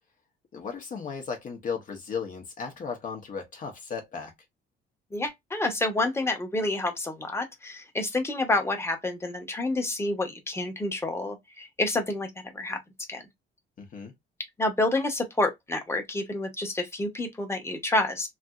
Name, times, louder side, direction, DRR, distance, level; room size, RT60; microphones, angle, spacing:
voice 1, 0.5-4.3 13.8-14.1, left 6 dB, 40° left, 0.8 m, -35 dB
voice 2, 5.1-12.3 12.5-12.8 13.1-13.2 14.6-18.3, left 2 dB, 15° left, 1.0 m, -28 dB
3.3 x 2.6 x 2.3 m
cardioid pair, 130°, 20 cm